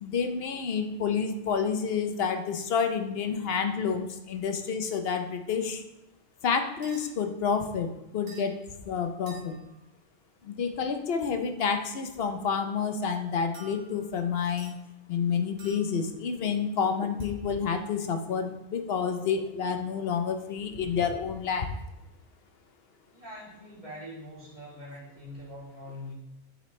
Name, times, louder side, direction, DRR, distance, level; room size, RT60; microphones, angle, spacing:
voice 1, 0.0-5.8 6.4-7.9 8.1-8.6 8.9-9.6 10.4-14.7 15.1-21.7, left 6 dB, 60° left, 7 dB, 0.8 m, -29 dB
sound 1, 6.8-7.1 8.3-8.6 9.3-9.8 13.5-14.2 14.6-14.8 15.6-16.1 17.2-17.4, right 4 dB, 90° right, 1.9 m, -50 dB
voice 2, 23.1-26.1, left 1 dB, 30° right, -7 dB, 2.5 m, -43 dB
7.0 x 5.4 x 3.1 m, 0.94 s
omnidirectional pair, 1.2 m